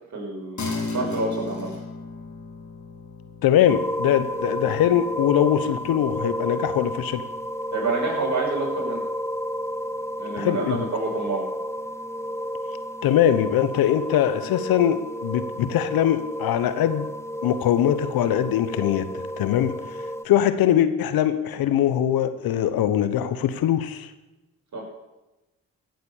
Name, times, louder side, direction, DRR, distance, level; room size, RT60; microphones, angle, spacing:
voice 1, 0.1-0.6 0.9-1.7 7.7-9.0 10.2-11.5 24.7-24.9, right 3 dB, 50° right, -2 dB, 6.0 m, -28 dB
sound 1, 0.6-10.3, left 3 dB, 50° left, 3.8 m, -38 dB
voice 2, 3.4-7.2 10.4-10.8 13.0-17.1 17.4-24.1, left 10 dB, 75° left, 12 dB, 1.0 m, -22 dB
sound 2, 3.7-20.2, equal, 5° left, 0.9 m, -31 dB
15.5 x 7.8 x 7.2 m, 1.0 s
supercardioid pair, 50°, 36 cm